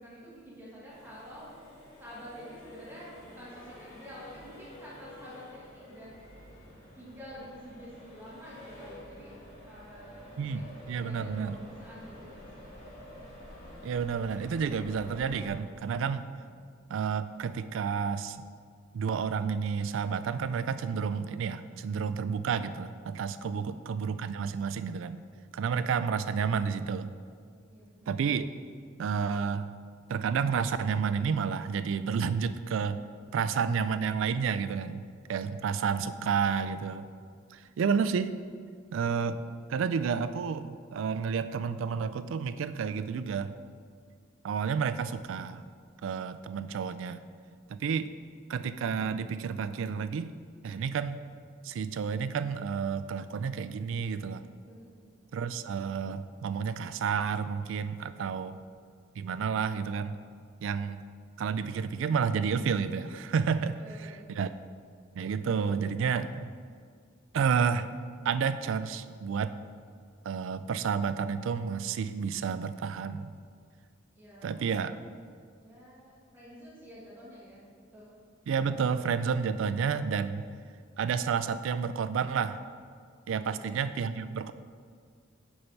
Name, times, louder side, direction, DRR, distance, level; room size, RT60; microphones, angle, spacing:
voice 1, 0.0-1.6 2.0-6.1 6.7-12.7 16.4-16.6 27.7-28.2 33.2-33.6 37.6-37.7 54.6-55.0 58.0-58.6 63.8-64.6 74.1-75.0 75.6-77.6 77.9-78.1 83.3-83.8, equal, 10° right, -8 dB, 1.4 m, -49 dB
Accelerating revving vroom, 0.9-15.5, left 1 dB, 30° left, 1.9 m, -49 dB
voice 2, 10.9-11.5 13.8-16.2 16.9-18.4 18.9-25.2 25.5-27.1 28.1-28.5 29.0-29.7 30.1-33.0 33.3-35.0 35.3-37.1 37.5-38.3 38.9-39.4 39.7-43.5 44.4-45.7 46.0-47.2 47.7-48.1 48.5-50.3 50.6-51.2 51.6-54.4 55.3-58.6 59.2-60.2 60.6-61.0 61.4-64.1 64.4-64.5 65.2-66.5 67.3-67.9 68.3-69.5 70.2-73.3 74.4-74.9 78.5-80.4 81.0-82.6 83.3-84.5, right 6 dB, 65° right, 13 dB, 0.3 m, -30 dB
6.7 x 5.4 x 4.5 m, 2.1 s
head